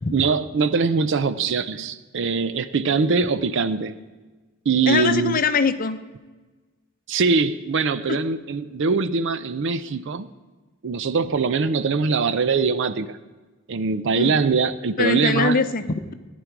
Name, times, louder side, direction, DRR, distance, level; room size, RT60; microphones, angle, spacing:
voice 1, 0.1-4.0 4.7-5.4 7.1-10.3 10.8-13.2 13.7-15.6, right 4 dB, 60° right, 14 dB, 0.5 m, -22 dB
voice 2, 4.9-6.0 8.1-8.2 14.2-14.4 15.0-16.1, left 4 dB, 40° left, 10 dB, 0.7 m, -22 dB
14.5 x 10.0 x 4.6 m, 1.3 s
head